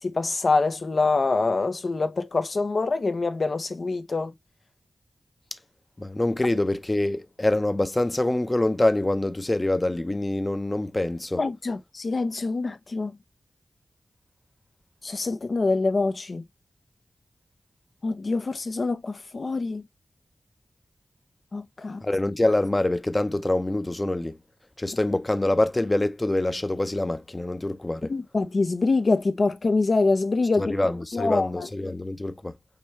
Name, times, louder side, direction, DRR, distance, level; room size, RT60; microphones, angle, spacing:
voice 1, 0.0-4.3 11.4-13.1 15.0-16.4 18.0-19.8 21.5-22.0 28.1-30.8 31.1-31.7, left 3 dB, 60° left, 0.7 m, -25 dB
voice 2, 6.0-11.4 22.0-24.3 24.8-28.1 30.6-32.5, left 1 dB, 25° left, 0.7 m, -25 dB
5.2 x 3.2 x 3.1 m
cardioid pair, 60°, 0 cm